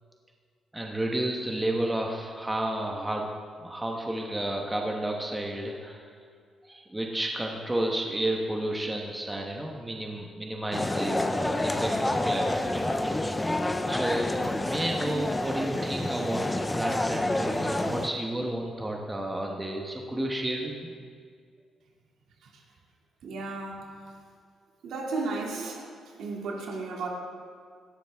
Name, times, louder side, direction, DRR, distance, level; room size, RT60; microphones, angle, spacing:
voice 1, 0.7-3.3 3.6-6.1 6.6-13.0 13.3-13.5 13.9-20.9, right 1 dB, 10° right, 0 dB, 1.1 m, -31 dB
sound 1, 10.7-18.1, left 1 dB, 10° left, 0.5 m, -28 dB
voice 2, 23.2-23.9 24.8-25.9 26.2-27.1, right 3 dB, 70° right, -1 dB, 2.4 m, -34 dB
18.0 x 14.0 x 3.5 m, 2.1 s
cardioid pair, 170°, 0 cm